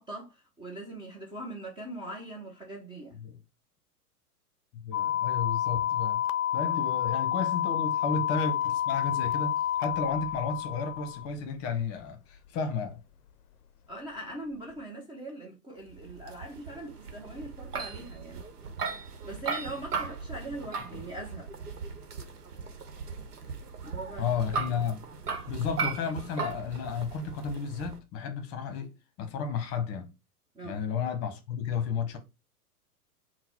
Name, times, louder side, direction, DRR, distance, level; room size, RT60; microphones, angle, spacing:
voice 1, 0.0-3.2 6.7-6.8 13.9-18.4 19.2-21.5 23.8-24.3 30.5-30.8, right 1 dB, 10° right, 0.6 m, -41 dB
voice 2, 4.8-6.2 6.5-13.0 20.9-21.0 24.2-25.0 25.5-28.9 29.2-30.1 30.6-32.2, left 5 dB, 30° left, 0.9 m, -32 dB
sound 1, 4.9-11.3, left 11 dB, 75° left, 0.5 m, -29 dB
sound 2, 15.9-28.0, right 5 dB, 85° right, 1.0 m, -38 dB
3.9 x 2.2 x 4.4 m
hypercardioid pair, 110°, 46 cm